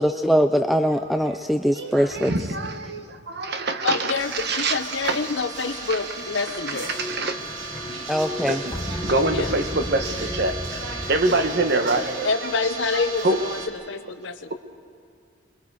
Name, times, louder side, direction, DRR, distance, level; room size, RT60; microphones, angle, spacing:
voice 1, 0.0-2.3 8.1-8.6, equal, ahead, 7 dB, 0.4 m, -21 dB
voice 2, 1.7-4.1 4.4-5.2 6.9-7.4 8.4-8.6 9.0-10.8 11.1-12.5 12.9-13.4, right 2 dB, 55° right, 7 dB, 1.3 m, -25 dB
voice 3, 3.8-7.0 9.3-9.5 12.2-14.5, left 4 dB, 70° left, 9 dB, 1.0 m, -27 dB
sound 1, 4.2-13.7, right 3 dB, 75° right, 2.8 m, -35 dB
sound 2, 6.9-12.3, left 1 dB, 15° left, 0.9 m, -34 dB
30.0 x 23.0 x 4.8 m, 2.5 s
head